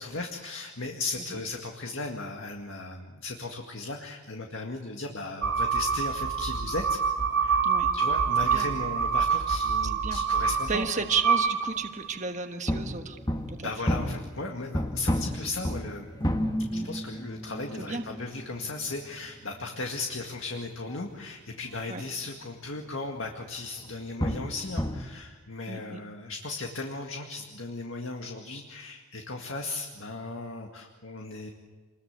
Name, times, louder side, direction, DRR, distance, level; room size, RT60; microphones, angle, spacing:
voice 1, 0.0-7.0 7.4-7.6 7.9-10.9 13.6-16.1 16.7-31.5, left 3 dB, 60° left, 2 dB, 2.0 m, -36 dB
sound 1, 5.4-12.2, right 6 dB, 80° right, 3.7 m, -26 dB
sound 2, 7.2-10.4 10.7-11.2 11.5-12.0 12.7-22.3 22.7-22.9 23.3-23.4 23.8-25.0, equal, 15° left, 1.4 m, -34 dB
voice 2, 9.8-10.2 10.7-13.2 13.5-13.7 16.7-16.9 17.8-18.0 21.9-22.0 25.7-26.0, right 5 dB, 35° right, 5 dB, 1.4 m, -33 dB
27.5 x 21.5 x 8.3 m, 1.4 s
head